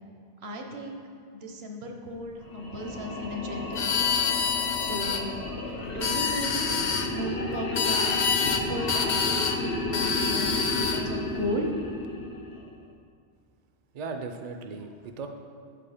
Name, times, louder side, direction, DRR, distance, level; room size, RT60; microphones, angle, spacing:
voice 1, 0.4-1.0 1.3-4.1 4.8-6.8 7.1-8.1 8.4-11.7, equal, 70° right, 2 dB, 1.1 m, -35 dB
sound 1, 2.4-12.8, left 2 dB, 80° left, 1.2 m, -33 dB
sound 2, 3.7-5.2 5.9-7.1 7.8-8.6 8.9-9.6 9.9-11.0, left 6 dB, 55° left, 0.6 m, -27 dB
voice 2, 13.9-15.3, right 4 dB, 50° right, 6 dB, 0.5 m, -37 dB
7.7 x 5.0 x 4.9 m, 2.3 s
omnidirectional pair, 1.1 m